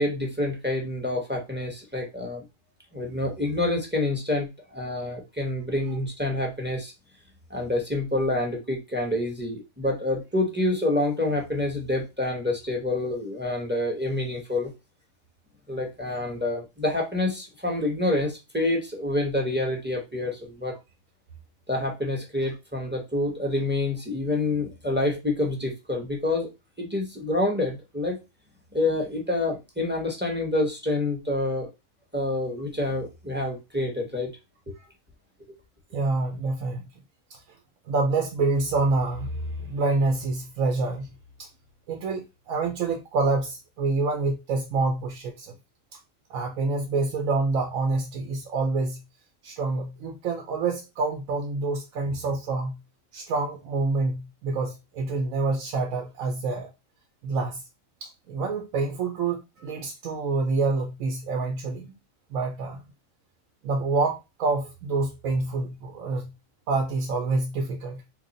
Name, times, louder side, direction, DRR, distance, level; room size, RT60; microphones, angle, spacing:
voice 1, 0.0-2.4 2.9-6.9 7.5-14.7 15.7-20.7 21.7-26.5 26.8-28.2 28.7-31.7 32.1-34.3 34.7-34.8, left 2 dB, 10° right, 0.6 m, -27 dB
voice 2, 35.9-36.8 37.3-37.4 37.9-41.1 41.9-45.6 46.3-49.0 49.4-52.8 53.1-56.7 57.2-57.6 58.0-61.9 62.3-62.8 63.6-66.3 66.7-68.0, right 3 dB, 85° right, 1.1 m, -27 dB
3.1 x 2.3 x 3.9 m
omnidirectional pair, 1.4 m